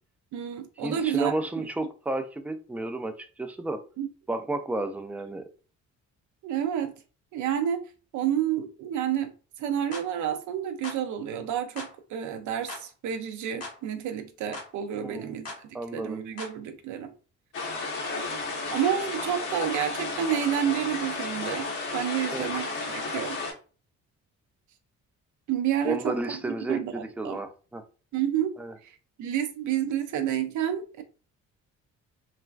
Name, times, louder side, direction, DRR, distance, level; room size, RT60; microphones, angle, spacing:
voice 1, 0.3-1.3 4.0-4.1 6.4-6.9 7.3-7.8 8.1-9.3 9.6-15.5 15.9-17.1 18.7-23.4 25.5-26.2 26.7-27.4 28.1-28.5 28.8-31.0, right 10 dB, 75° right, 0.5 m, -29 dB
voice 2, 0.8-3.8 4.3-5.4 14.9-15.3 15.7-16.2 22.3-22.5 25.8-27.8 28.6-28.7, right 2 dB, 5° right, 0.3 m, -32 dB
sound 1, 9.9-10.1 10.8-11.0 11.8-11.9 12.7-12.9 13.6-13.8 14.5-14.7 15.5-15.6 16.4-16.6, left 2 dB, 55° left, 0.9 m, -39 dB
sound 2, 17.5-23.5, left 3 dB, 80° left, 1.3 m, -33 dB
3.2 x 2.3 x 2.3 m
cardioid pair, 90°, 30 cm